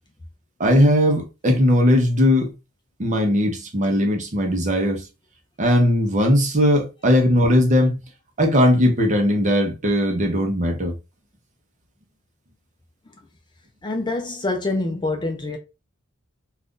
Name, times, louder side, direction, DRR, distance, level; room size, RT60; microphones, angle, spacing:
voice 1, 0.6-2.5 3.0-5.0 5.6-7.9 8.4-10.9, equal, 35° right, 0.7 m, -18 dB
voice 2, 13.8-15.6, left 2 dB, 20° left, 0.4 m, -25 dB
2.5 x 2.4 x 3.6 m
head